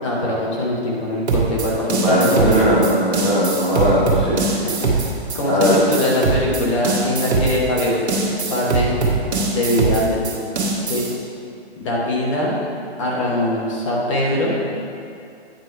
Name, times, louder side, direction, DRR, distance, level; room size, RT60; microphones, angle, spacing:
voice 1, 0.0-2.9 4.5-8.0 8.4-9.0 9.5-10.2 10.9-11.0 11.8-12.6 13.0-14.6, left 1 dB, 30° left, -4 dB, 1.1 m, -22 dB
sound 1, 1.3-11.2, right 3 dB, 80° right, 1.6 m, -22 dB
voice 2, 2.0-4.4 5.4-5.8, equal, ahead, -16 dB, 0.8 m, -18 dB
8.9 x 3.0 x 5.6 m, 2.5 s
hypercardioid pair, 165°, 32 cm